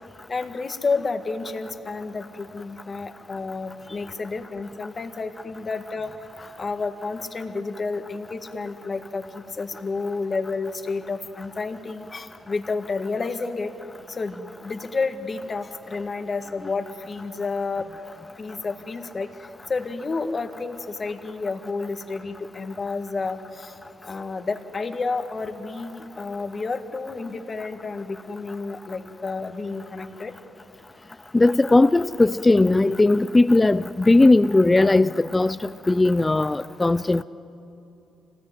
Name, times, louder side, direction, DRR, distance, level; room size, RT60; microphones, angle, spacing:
voice 1, 0.3-13.7 14.1-17.9 18.4-23.8 24.0-30.4, left 4 dB, 35° left, 1.8 m, -30 dB
voice 2, 31.3-37.2, left 2 dB, 20° left, 0.5 m, -18 dB
26.0 x 19.5 x 9.5 m
cardioid pair, 90°, 0 cm